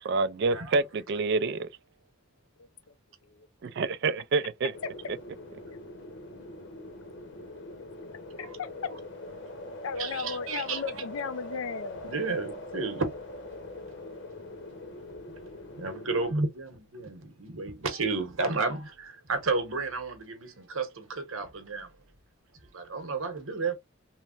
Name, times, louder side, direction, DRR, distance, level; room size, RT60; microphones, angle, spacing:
voice 1, 0.0-1.7 3.6-4.7, right 3 dB, 55° right, 0.3 m, -27 dB
sound 1, 4.7-16.3, left 1 dB, 60° left, 0.8 m, -43 dB
voice 2, 8.4-8.9 9.8-12.2, left 5 dB, 85° left, 0.5 m, -35 dB
voice 3, 10.0-10.8 12.0-13.1 15.8-21.9 22.7-23.7, right 3 dB, 85° right, 1.0 m, -32 dB
3.2 x 2.1 x 2.4 m
head